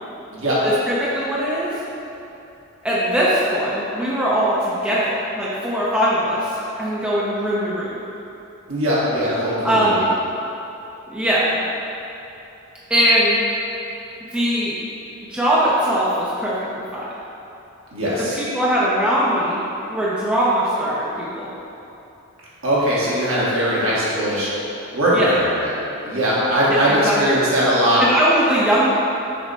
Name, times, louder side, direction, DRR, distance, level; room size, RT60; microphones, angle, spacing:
voice 1, 0.6-1.8 2.8-8.0 9.6-10.1 11.1-11.6 12.9-13.4 14.3-14.7 15.3-16.5 16.9-17.0 18.4-19.6 19.9-21.5 25.1-25.3 26.7-27.4 28.0-28.9, equal, 5° right, -8 dB, 0.5 m, -20 dB
voice 2, 8.7-10.1 17.9-18.4 22.6-24.5 24.9-25.7 26.0-28.0, equal, 70° right, -8 dB, 1.3 m, -20 dB
6.2 x 2.1 x 4.0 m, 2.9 s
head